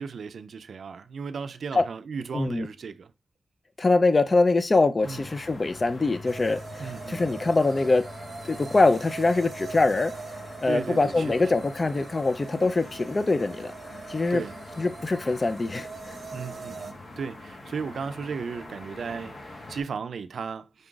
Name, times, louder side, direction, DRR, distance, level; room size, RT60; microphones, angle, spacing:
voice 1, 0.0-3.1 5.0-5.3 6.8-7.4 10.7-11.4 14.3-14.6 16.3-20.9, right 5 dB, 75° right, 0.3 m, -35 dB
voice 2, 2.3-2.7 3.8-8.1 8.4-10.1 10.6-13.7 14.1-14.4 14.8-16.2, left 3 dB, 35° left, 0.4 m, -23 dB
sound 1, 5.0-19.8, left 2 dB, 60° left, 1.1 m, -44 dB
sound 2, 6.2-16.9, right 5 dB, 50° right, 0.7 m, -42 dB
5.2 x 2.3 x 3.8 m
wide cardioid pair, 105°, 0 cm